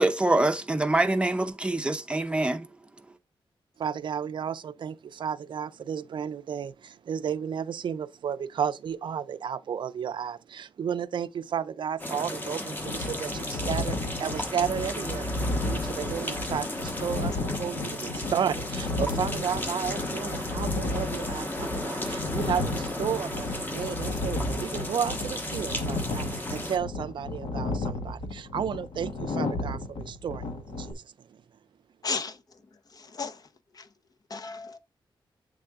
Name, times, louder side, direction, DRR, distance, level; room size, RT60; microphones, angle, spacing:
voice 1, 0.0-2.7, right 2 dB, 10° right, 0.6 m, -25 dB
voice 2, 3.8-15.3 15.6-31.4, right 8 dB, 65° right, 0.4 m, -33 dB
sound 1, 12.0-26.8, left 1 dB, 20° left, 1.2 m, -34 dB
sound 2, 12.8-30.9, left 2 dB, 75° left, 1.1 m, -33 dB
voice 3, 32.0-32.6 32.9-33.5 33.7-33.9 34.3-34.8, left 4 dB, 45° left, 0.8 m, -35 dB
7.7 x 3.6 x 3.5 m
wide cardioid pair, 100°, 9 cm